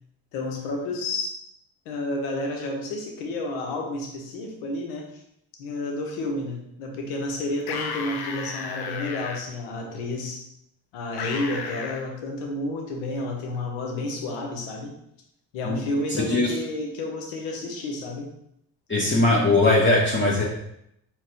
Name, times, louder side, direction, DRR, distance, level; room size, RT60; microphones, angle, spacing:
voice 1, 0.3-1.4 1.9-5.2 5.6-10.5 10.9-14.9 15.5-18.3, left 2 dB, 90° left, 2 dB, 0.9 m, -31 dB
sound 1, 7.6-9.4 11.2-12.0, left 5 dB, 50° left, 0.8 m, -33 dB
voice 2, 18.9-20.4, left 2 dB, 25° left, -5 dB, 1.2 m, -20 dB
4.2 x 3.7 x 3.0 m, 0.76 s
hypercardioid pair, 40°, 48 cm